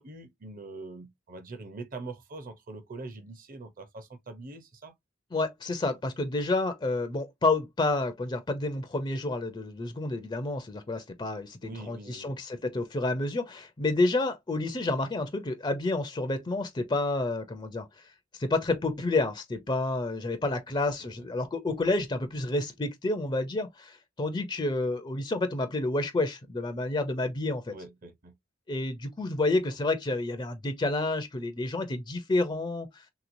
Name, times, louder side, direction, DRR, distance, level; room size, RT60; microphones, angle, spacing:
voice 1, 0.0-4.9 11.6-12.4 20.7-21.2 27.7-28.3, right 3 dB, 40° right, 0.7 m, -43 dB
voice 2, 5.3-18.0 18.3-27.7 28.7-33.0, left 2 dB, 20° left, 0.5 m, -29 dB
3.3 x 2.9 x 2.5 m
head